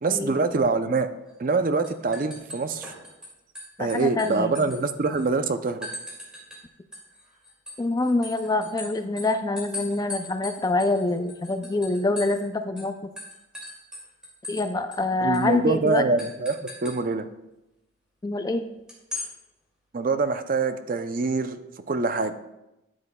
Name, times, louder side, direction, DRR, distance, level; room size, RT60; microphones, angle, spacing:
voice 1, 0.0-1.1 1.4-2.9 3.8-5.8 15.2-17.2 19.9-21.6 21.9-22.3, right 3 dB, 40° right, 10 dB, 0.5 m, -25 dB
sound 1, 1.3-1.5 1.8-3.3 3.5-5.3 5.8-6.6 6.9-12.5 12.8-12.9 13.2-14.6 14.9-15.0 15.3-15.5 16.2-17.0 18.9-19.3, left 2 dB, 5° right, 2.2 m, -39 dB
voice 2, 3.8-4.6 7.8-12.9 14.5-16.0 18.2-18.7, left 2 dB, 20° left, 8 dB, 0.3 m, -25 dB
12.0 x 7.6 x 2.2 m, 0.93 s
head